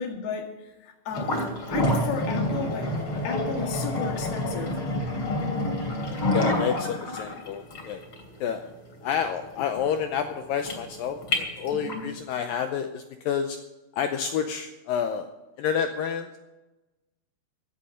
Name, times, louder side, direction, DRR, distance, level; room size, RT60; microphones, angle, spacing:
voice 1, 0.0-2.9 3.2-4.8 11.7-12.1, left 5 dB, 65° left, 2 dB, 3.7 m, -33 dB
sound 1, 1.1-12.1, left 1 dB, 35° left, 3.3 m, -28 dB
voice 2, 6.3-8.0 8.4-8.6 9.0-11.2 11.6-13.6 14.0-15.3 15.6-16.4, left 7 dB, 85° left, 7 dB, 2.0 m, -29 dB
15.5 x 8.5 x 6.4 m, 1.1 s
omnidirectional pair, 4.9 m